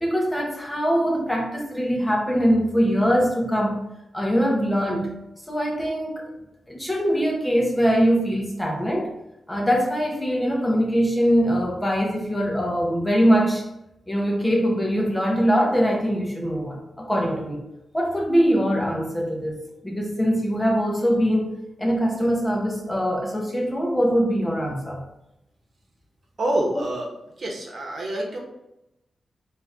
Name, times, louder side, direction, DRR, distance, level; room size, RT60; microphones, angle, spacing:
voice 1, 0.0-3.8 4.1-5.1 5.5-6.3 6.7-9.1 9.5-13.6 14.1-17.6 17.9-21.5 21.8-25.0, equal, 10° left, -1 dB, 0.9 m, -22 dB
voice 2, 26.4-27.1 27.4-28.4, right 1 dB, 55° right, -2 dB, 1.1 m, -26 dB
3.3 x 3.2 x 3.5 m, 0.88 s
wide cardioid pair, 110°, 0 cm